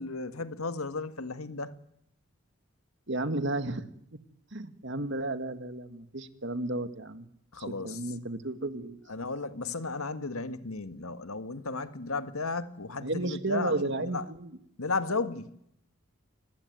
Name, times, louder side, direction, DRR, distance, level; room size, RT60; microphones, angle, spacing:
voice 1, 0.0-1.7 7.5-8.0 9.1-14.2 14.8-15.6, left 3 dB, 80° left, 1.7 m, -34 dB
voice 2, 3.1-3.8 4.5-7.3 7.8-9.0 13.0-14.5 15.1-15.2, right 2 dB, 55° right, 2.0 m, -33 dB
28.5 x 20.5 x 9.4 m
head